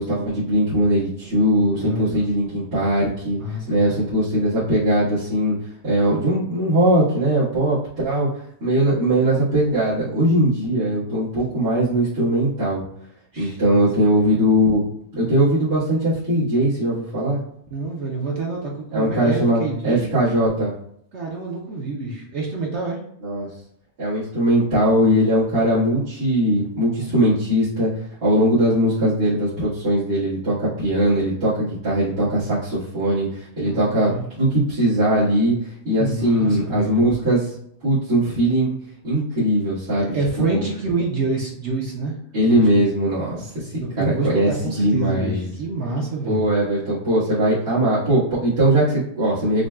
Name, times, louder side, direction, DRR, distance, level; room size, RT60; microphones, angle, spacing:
voice 1, 0.0-3.4 3.7-5.6 5.8-7.8 8.0-8.3 8.6-12.8 13.4-14.8 15.1-17.4 18.9-20.7 23.2-23.5 24.0-34.1 34.4-37.5 37.8-38.7 39.0-40.6 42.3-45.5 46.3-49.7, right 1 dB, 85° right, -14 dB, 2.3 m, -20 dB
voice 2, 1.8-2.2 3.4-3.9 13.3-14.3 17.7-20.1 21.1-23.0 33.6-34.2 36.0-37.0 40.0-42.2 42.5-42.7 43.4-43.5 43.8-46.5, right 3 dB, 60° right, -2 dB, 0.8 m, -27 dB
6.3 x 2.2 x 2.3 m, 0.69 s
omnidirectional pair, 1.6 m